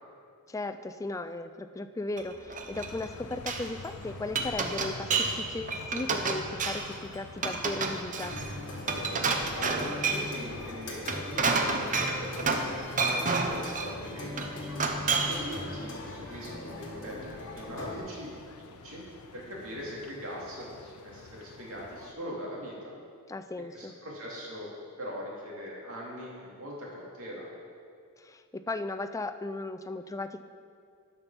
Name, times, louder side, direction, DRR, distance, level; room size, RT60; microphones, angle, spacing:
voice 1, 0.5-8.4 23.3-23.9 28.2-30.4, left 2 dB, 15° left, 9 dB, 0.3 m, -36 dB
Glass, 2.2-3.7 4.1-5.4 5.7-7.0 7.4-10.3 10.9-12.7 13.0-13.9 14.4-15.5, right 4 dB, 35° right, 0.7 m, -30 dB
sound 1, 2.7-22.1, left 4 dB, 90° left, 0.6 m, -48 dB
sound 2, 8.2-18.0, left 2 dB, 60° left, 1.5 m, -40 dB
voice 2, 9.5-14.6 15.3-18.3 18.6-19.0 19.3-22.9 23.7-24.7 25.0-27.5, equal, 65° right, -4 dB, 2.3 m, -41 dB
11.0 x 5.2 x 6.1 m, 2.3 s
head